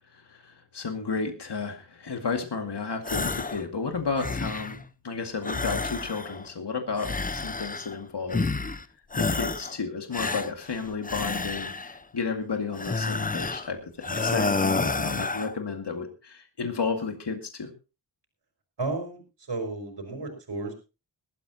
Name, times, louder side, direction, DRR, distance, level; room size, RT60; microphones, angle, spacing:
voice 1, 0.1-4.8 5.0-8.5 9.1-17.7, left 4 dB, 65° left, 4 dB, 2.3 m, -32 dB
sound 1, 3.0-3.6 4.0-4.8 5.4-6.5 7.0-8.0 8.3-8.8 9.1-9.8 10.1-12.0 12.7-13.7 14.0-15.5, left 3 dB, 20° left, 0.6 m, -29 dB
voice 2, 18.8-19.2 19.5-20.7, right 3 dB, 70° right, 3 dB, 4.4 m, -32 dB
20.5 x 13.0 x 2.9 m, 0.32 s
wide cardioid pair, 110°, 44 cm